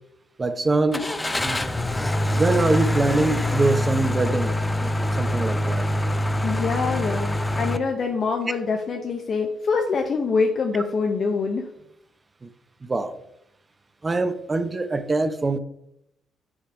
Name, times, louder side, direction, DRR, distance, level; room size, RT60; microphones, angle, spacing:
voice 1, 0.4-1.1 1.4-1.6 2.3-4.5 4.8-5.9 12.4-12.5 12.8-13.2 14.0-15.6, right 3 dB, 30° right, 10 dB, 0.7 m, -24 dB
Car / Engine starting, 0.9-7.8, left 1 dB, 15° left, 0.5 m, -24 dB
sound 1, 1.2-8.6, right 4 dB, 65° right, 1.2 m, -44 dB
voice 2, 6.4-11.7, left 4 dB, 55° left, 3 dB, 0.7 m, -25 dB
9.5 x 3.3 x 5.0 m, 0.80 s
hypercardioid pair, 50°, 0 cm